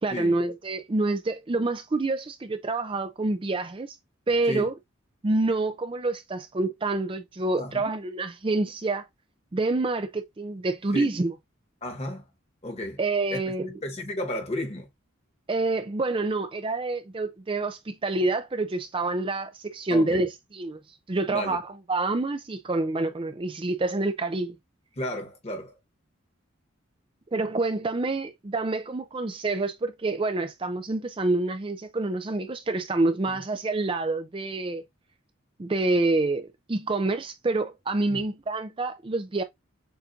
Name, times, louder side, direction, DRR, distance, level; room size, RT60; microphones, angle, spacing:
voice 1, 0.0-4.0 4.3-4.7 5.2-9.1 9.5-11.3 13.0-13.8 15.5-20.8 21.1-24.6 27.3-34.8 35.6-39.4, right 2 dB, 25° right, 0.4 m, -27 dB
voice 2, 11.8-12.2 12.6-13.0 13.3-13.4 13.8-14.9 19.9-20.2 21.3-21.6 25.0-25.7 33.3-33.4 38.1-38.3, left 1 dB, 30° left, 1.3 m, -33 dB
6.9 x 2.6 x 2.5 m
head